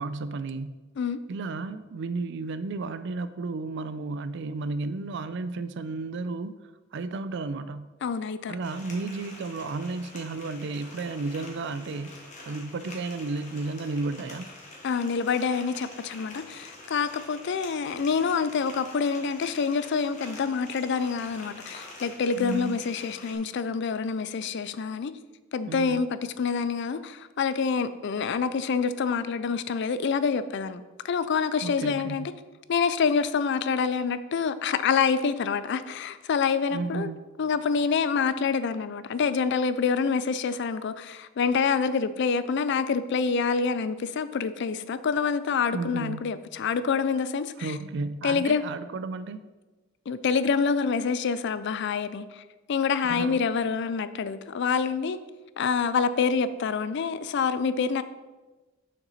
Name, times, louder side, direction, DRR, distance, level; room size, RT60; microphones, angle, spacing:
voice 1, 0.0-0.8 1.3-6.6 6.9-8.0 8.5-14.5 22.4-22.8 25.7-26.0 31.6-32.3 36.7-37.2 45.7-46.2 47.6-49.4 53.0-53.4, right 3 dB, 65° right, 13 dB, 0.4 m, -33 dB
voice 2, 8.0-8.6 14.8-25.1 25.5-32.3 32.7-37.1 37.4-47.7 48.2-48.7 50.1-52.4 52.7-55.2 55.6-58.0, left 5 dB, 60° left, 13 dB, 0.4 m, -27 dB
sound 1, 8.6-23.3, left 2 dB, 40° left, 1.5 m, -46 dB
6.5 x 5.9 x 4.1 m, 1.2 s
head